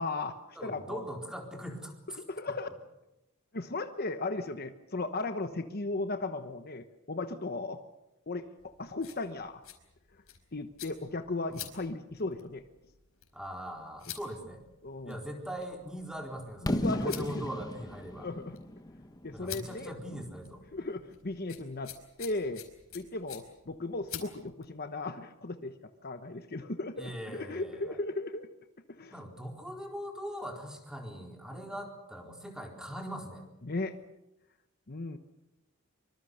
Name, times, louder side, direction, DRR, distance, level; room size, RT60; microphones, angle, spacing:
voice 1, 0.0-0.4 0.6-1.0 2.2-2.7 3.5-7.8 8.3-9.6 10.5-12.6 14.8-15.2 16.6-17.4 18.2-18.6 19.2-20.2 20.7-21.9 22.2-22.6 22.9-25.8 26.0-28.5 28.9-29.2 31.5-31.6 33.6-34.0 34.9-35.2, left 2 dB, 45° left, 8 dB, 1.1 m, -36 dB
voice 2, 0.6-2.2 11.5-11.7 13.3-14.6 15.0-18.3 19.3-20.6 27.0-28.0 29.1-33.5, equal, 5° right, 2 dB, 4.1 m, -41 dB
sound 1, 8.6-24.7, left 11 dB, 90° left, 4.7 m, -50 dB
Fireworks, 16.7-20.5, left 1 dB, 20° left, 1.3 m, -35 dB
25.0 x 24.5 x 6.6 m, 0.94 s
head